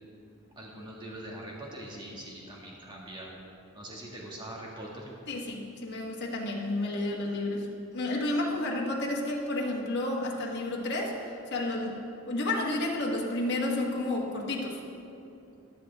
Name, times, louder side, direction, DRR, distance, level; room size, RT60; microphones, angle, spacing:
voice 1, 0.6-3.3 3.7-5.1, right 1 dB, 20° right, -3 dB, 1.9 m, -42 dB
voice 2, 5.3-14.8, left 2 dB, 50° left, -2 dB, 1.3 m, -31 dB
13.5 x 11.5 x 3.5 m, 2.7 s
head